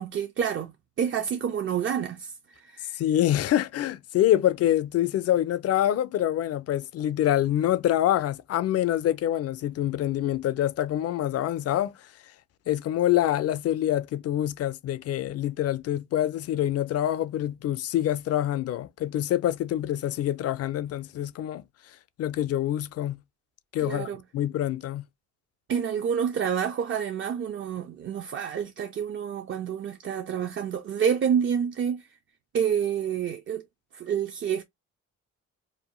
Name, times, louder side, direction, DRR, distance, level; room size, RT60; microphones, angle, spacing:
voice 1, 0.0-3.0 23.8-24.2 25.7-32.2 32.5-33.6 33.9-34.6, right 8 dB, 40° right, 0.4 m, -28 dB
voice 2, 3.0-12.0 12.7-21.6 22.2-23.2 23.7-25.0, left 12 dB, 55° left, 0.4 m, -26 dB
2.7 x 2.1 x 2.9 m
cardioid pair, 90°, 30 cm